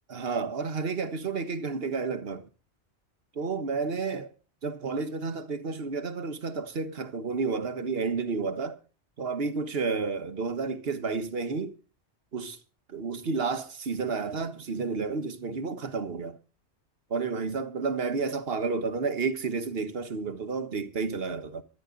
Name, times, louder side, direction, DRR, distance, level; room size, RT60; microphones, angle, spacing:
voice 1, 0.1-2.4 3.3-4.3 4.6-8.8 9.2-11.7 12.3-12.6 12.9-16.4 17.1-21.6, right 4 dB, 65° right, 1.5 m, -31 dB
24.5 x 10.5 x 3.9 m
omnidirectional pair, 1.1 m